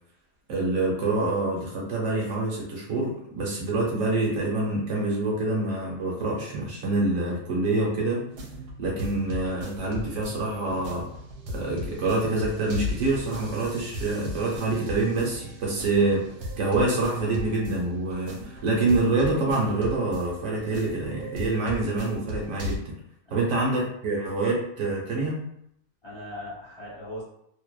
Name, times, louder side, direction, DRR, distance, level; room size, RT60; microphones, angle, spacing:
voice 1, 0.5-8.2 8.8-11.1 11.5-16.3 16.6-23.0 23.3-25.4, right 2 dB, 65° right, -3 dB, 1.0 m, -26 dB
sound 1, 8.3-22.8, left 1 dB, 85° right, 1.1 m, -37 dB
voice 2, 23.3-23.6 26.0-27.2, left 1 dB, 45° left, -8 dB, 0.3 m, -39 dB
2.6 x 2.1 x 2.2 m, 0.73 s
omnidirectional pair, 1.6 m